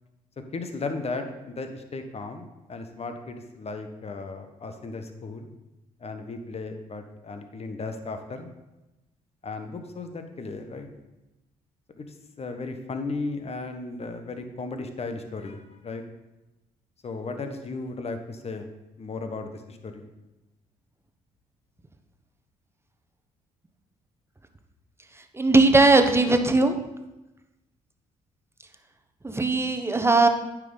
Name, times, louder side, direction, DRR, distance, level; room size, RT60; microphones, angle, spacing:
voice 1, 0.4-5.5 6.0-8.5 9.4-10.9 12.0-12.1 12.4-16.0 17.0-18.7 19.0-20.1, left 3 dB, 40° left, 6 dB, 1.2 m, -35 dB
voice 2, 25.3-26.7 29.2-30.3, right 3 dB, 15° right, 6 dB, 1.0 m, -19 dB
9.1 x 6.0 x 4.0 m, 0.98 s
hypercardioid pair, 55°, 17 cm